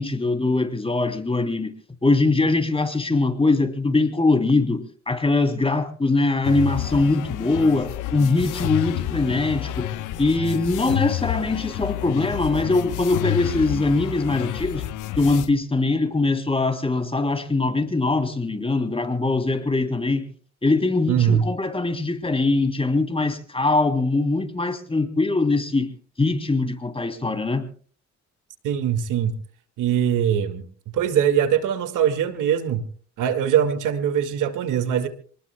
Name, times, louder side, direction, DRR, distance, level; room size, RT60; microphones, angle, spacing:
voice 1, 0.0-1.7 2.0-9.9 10.2-14.8 15.2-20.3 20.6-25.9 26.2-27.7, left 3 dB, 20° left, 2.9 m, -22 dB
sound 1, 6.4-15.5, left 13 dB, 85° left, 1.0 m, -29 dB
voice 2, 21.1-21.4 28.6-29.4 29.8-30.7 30.9-32.9 33.2-35.1, right 9 dB, 85° right, 2.0 m, -22 dB
27.5 x 19.5 x 2.2 m
cardioid pair, 90°, 30 cm